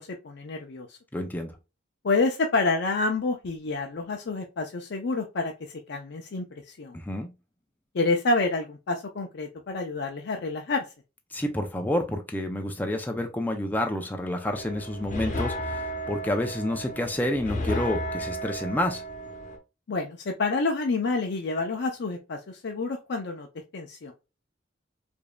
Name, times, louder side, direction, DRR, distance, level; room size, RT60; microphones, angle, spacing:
voice 1, 0.0-1.0 2.0-5.5 5.9-6.9 7.9-10.8 19.9-23.5 23.7-24.1, left 3 dB, 65° left, 0.5 m, -28 dB
voice 2, 1.1-1.5 6.9-7.3 11.3-19.0, left 1 dB, 10° left, 0.4 m, -29 dB
sound 1, 14.4-19.6, equal, 40° left, 0.9 m, -33 dB
4.9 x 2.6 x 2.2 m
head